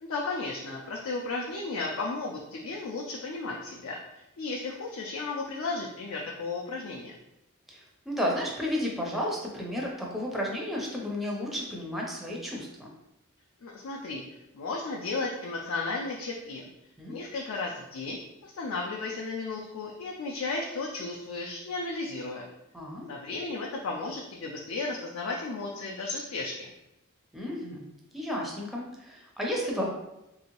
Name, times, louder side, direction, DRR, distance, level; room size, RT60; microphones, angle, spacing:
voice 1, 0.0-7.2 13.6-16.6 17.1-22.5 23.1-26.7, left 3 dB, 70° left, -1 dB, 0.4 m, -34 dB
voice 2, 7.7-12.9 17.0-17.2 22.7-23.1 27.3-29.9, equal, ahead, -2 dB, 0.4 m, -32 dB
2.9 x 2.7 x 2.9 m, 0.90 s
head